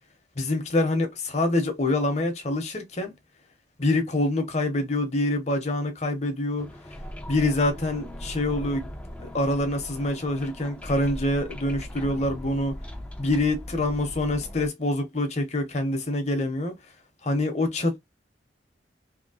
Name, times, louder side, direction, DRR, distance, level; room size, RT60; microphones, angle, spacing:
voice 1, 0.4-3.1 3.8-6.7 7.3-8.9 9.2-12.8 13.2-16.7 17.2-18.0, left 2 dB, 40° left, 0.9 m, -26 dB
sound 1, 6.6-14.7, equal, 10° left, 0.5 m, -39 dB
2.9 x 2.9 x 2.7 m
head